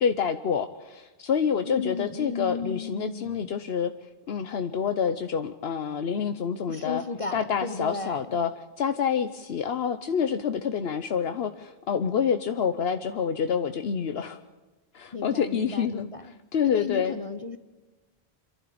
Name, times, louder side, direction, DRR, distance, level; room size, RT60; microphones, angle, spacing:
voice 1, 0.0-3.9 4.3-7.0 7.3-8.5 8.8-14.4 14.9-16.1 16.5-17.2, left 7 dB, 75° left, 9 dB, 1.1 m, -27 dB
voice 2, 1.6-3.6 6.7-8.4 15.1-16.2 16.6-17.6, left 4 dB, 35° left, 10 dB, 0.9 m, -34 dB
26.5 x 12.0 x 8.6 m, 1.2 s
omnidirectional pair, 1.0 m